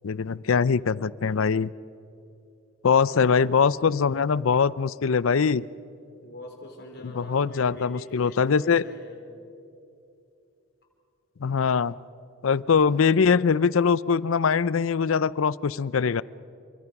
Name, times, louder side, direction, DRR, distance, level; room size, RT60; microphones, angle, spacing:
voice 1, 0.0-1.7 2.8-5.7 7.1-8.8 11.4-12.0 12.4-16.2, left 6 dB, 75° left, 20 dB, 0.5 m, -22 dB
voice 2, 3.1-3.6 6.2-9.2, left 1 dB, 55° left, 1 dB, 4.5 m, -43 dB
28.5 x 24.0 x 6.0 m, 2.6 s
head